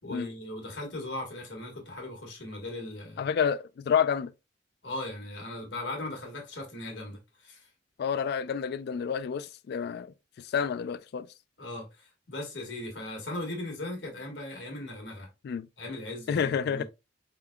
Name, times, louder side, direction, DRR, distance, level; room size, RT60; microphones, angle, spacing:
voice 1, 0.0-3.3 4.8-7.7 11.6-15.3 15.8-16.8, left 1 dB, 80° left, 1.6 m, -38 dB
voice 2, 3.2-4.3 8.0-10.1 10.5-11.3 15.4-15.7 16.3-16.8, left 7 dB, 60° left, 0.3 m, -29 dB
4.5 x 3.8 x 2.2 m
head